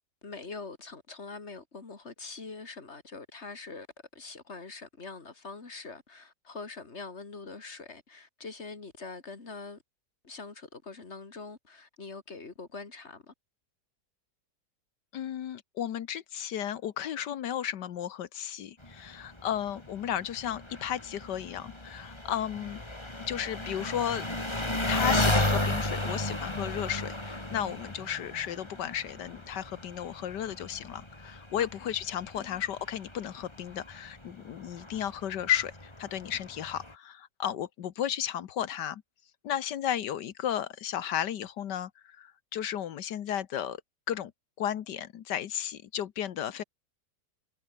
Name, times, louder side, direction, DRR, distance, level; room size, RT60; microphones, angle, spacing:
voice 1, 0.2-3.9 4.1-9.8 10.2-13.3 31.6-31.9 32.3-32.6, left 4 dB, 40° left, 2.9 m, -44 dB
voice 2, 15.1-22.8 23.3-24.3 24.9-39.0 39.4-43.8 44.1-44.3 44.6-46.6, left 10 dB, 80° left, 1.7 m, -34 dB
Engine, 18.8-36.9, left 1 dB, 15° left, 3.1 m, -34 dB
omnidirectional pair, 1.8 m